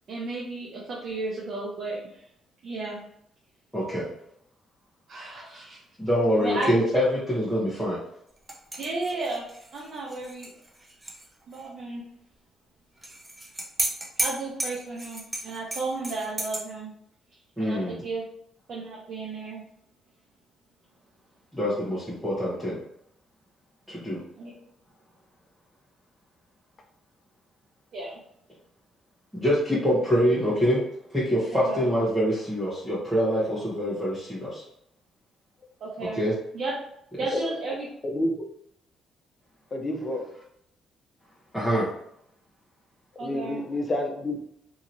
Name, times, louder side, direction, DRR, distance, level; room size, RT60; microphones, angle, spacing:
voice 1, 0.1-2.2 2.6-3.0 5.1-5.8 6.4-6.7 8.8-9.4 9.7-10.5 11.5-12.0 14.2-16.9 17.6-18.2 18.7-19.6 24.4-24.5 27.9-28.2 31.7-31.8 35.8-36.7 37.2-37.9 43.2-43.6, right 3 dB, 55° right, -4 dB, 0.7 m, -33 dB
voice 2, 3.7-4.0 6.0-8.0 17.6-18.0 21.5-22.8 23.9-24.2 29.3-30.8 31.1-34.6 36.1-36.3 41.5-41.9, equal, ahead, -9 dB, 1.0 m, -25 dB
sound 1, 8.5-11.3 11.5-11.6 13.0-16.6, right 1 dB, 15° right, 0.6 m, -33 dB
voice 3, 38.1-38.5 39.7-40.3 43.2-44.4, left 1 dB, 35° left, 3 dB, 0.6 m, -29 dB
2.8 x 2.8 x 2.6 m, 0.73 s
cardioid pair, 90°, 0 cm